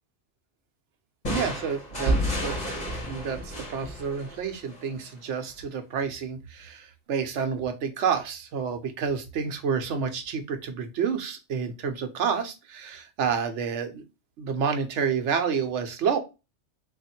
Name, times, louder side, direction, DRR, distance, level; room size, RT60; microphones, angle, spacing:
sound 1, 1.2-4.9, equal, 35° left, 1.5 m, -30 dB
voice 1, 1.3-2.7 3.1-14.0 14.4-16.2, right 6 dB, 85° right, 7 dB, 1.0 m, -29 dB
3.5 x 2.5 x 4.2 m, 0.28 s
omnidirectional pair, 1.2 m